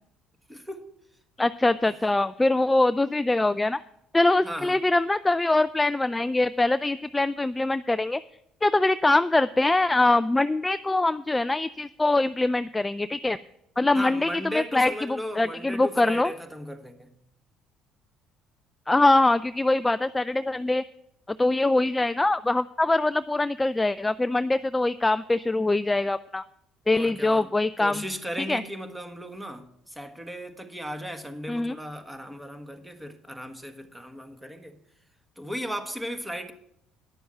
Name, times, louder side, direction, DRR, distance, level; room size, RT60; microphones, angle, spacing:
voice 1, 0.5-0.9 4.4-4.8 13.9-17.1 26.9-27.5 27.8-34.8 35.4-36.5, equal, 5° right, 1.5 m, -36 dB
voice 2, 1.4-3.8 4.1-8.2 8.6-13.4 13.8-16.3 18.9-20.8 21.4-26.4 26.9-28.0 28.4-28.6 31.5-31.8, left 2 dB, 15° left, 0.3 m, -23 dB
10.5 x 7.0 x 7.5 m
cardioid pair, 95°, 0 cm